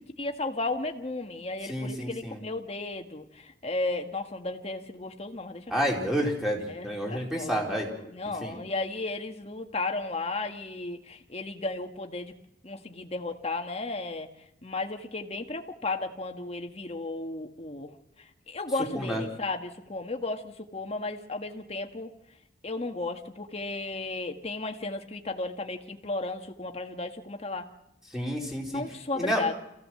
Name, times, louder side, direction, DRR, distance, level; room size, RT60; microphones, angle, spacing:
voice 1, 0.2-5.9 6.7-12.3 12.6-14.3 14.6-17.9 18.5-22.1 22.6-27.7 28.7-29.5, left 2 dB, 35° left, 4 dB, 1.7 m, -34 dB
voice 2, 1.7-2.4 5.7-7.9 8.4-8.6 18.9-19.2 28.1-28.8 29.2-29.4, equal, 5° right, -1 dB, 4.4 m, -29 dB
26.0 x 16.0 x 7.7 m, 0.88 s
head